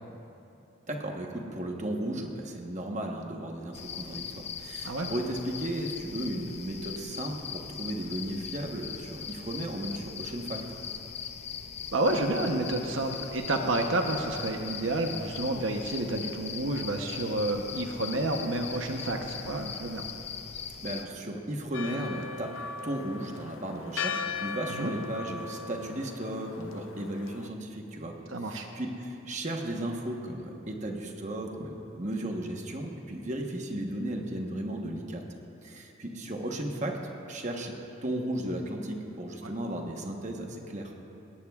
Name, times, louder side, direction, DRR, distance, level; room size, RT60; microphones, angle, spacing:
voice 1, 0.9-10.6 20.8-22.5 22.8-35.2 35.6-37.0 37.3-40.9, right 1 dB, 35° right, 1 dB, 1.1 m, -35 dB
sound 1, 3.7-21.1, left 7 dB, 30° left, 0.5 m, -40 dB
voice 2, 11.9-20.1 24.7-24.9 28.3-28.7 39.4-39.5, right 2 dB, 75° right, 3 dB, 0.9 m, -30 dB
Church bell, 21.7-27.5, left 5 dB, 85° left, 0.5 m, -38 dB
19.0 x 17.0 x 2.4 m, 2.8 s
head